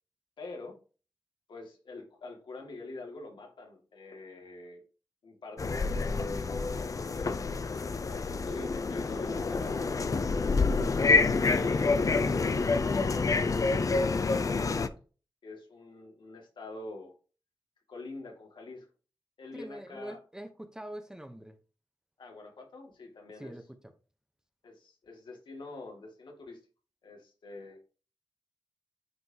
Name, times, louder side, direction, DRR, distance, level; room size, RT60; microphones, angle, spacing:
voice 1, 0.4-0.8 1.5-4.8 5.2-6.3 7.0-7.4 8.0-9.7 10.5-14.9 15.4-17.1 17.9-18.9 19.4-20.2 22.2-23.5 24.6-26.6 27.0-27.8, left 2 dB, 85° left, 2.3 m, -45 dB
sound 1, 5.6-14.9, left 4 dB, 45° left, 0.6 m, -28 dB
voice 2, 19.5-21.6 23.4-23.6, right 1 dB, 10° right, 1.0 m, -43 dB
9.6 x 5.2 x 2.9 m
wide cardioid pair, 110°, 8 cm